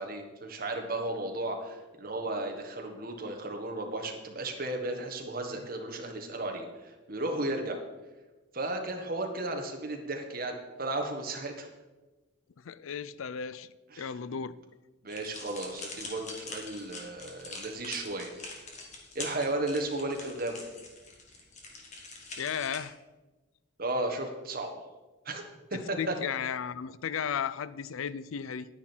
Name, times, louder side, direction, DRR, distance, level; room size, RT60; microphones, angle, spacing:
voice 1, 0.0-7.8 8.5-11.7 13.9-14.1 15.0-18.3 19.1-20.6 23.8-24.9 25.2-25.4 25.9-26.1, right 2 dB, 45° right, 3 dB, 1.5 m, -34 dB
voice 2, 12.6-13.7 14.0-14.6 22.4-23.0 26.0-28.7, left 7 dB, 85° left, 16 dB, 0.4 m, -34 dB
sound 1, 15.1-22.8, left 3 dB, 35° left, 1.8 m, -44 dB
10.0 x 9.9 x 4.5 m, 1.2 s
head